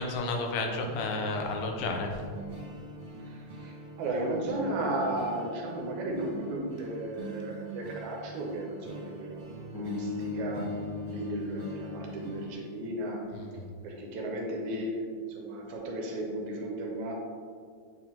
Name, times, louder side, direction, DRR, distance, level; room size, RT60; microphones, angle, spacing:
voice 1, 0.0-2.2 13.3-13.7, left 3 dB, 85° left, 3 dB, 2.3 m, -32 dB
sound 1, 0.9-12.5, right 2 dB, 50° right, 2.1 m, -43 dB
voice 2, 3.2-9.4 9.8-10.7 11.1-13.2 13.8-15.0 15.3-17.1, right 1 dB, 75° right, 0 dB, 1.9 m, -35 dB
sound 2, 9.7-13.9, left 5 dB, 50° left, 1.3 m, -39 dB
7.9 x 4.6 x 2.9 m, 2.1 s
omnidirectional pair, 3.7 m